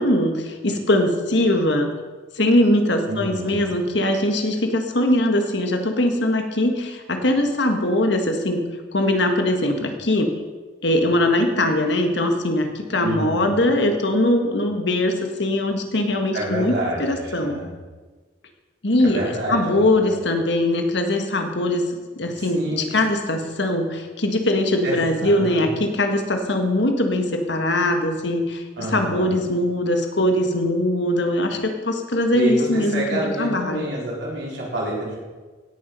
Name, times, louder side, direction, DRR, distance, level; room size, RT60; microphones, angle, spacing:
voice 1, 0.0-1.9 2.3-8.6 8.9-10.3 10.8-17.6 18.8-19.2 19.5-21.9 22.1-33.9, left 1 dB, 65° left, 5 dB, 1.5 m, -21 dB
voice 2, 3.1-3.6 13.0-13.7 16.3-17.8 19.0-20.1 22.4-22.8 24.8-25.7 28.8-29.4 32.3-35.2, right 1 dB, 65° right, -4 dB, 4.2 m, -28 dB
17.0 x 7.1 x 5.4 m, 1.3 s
head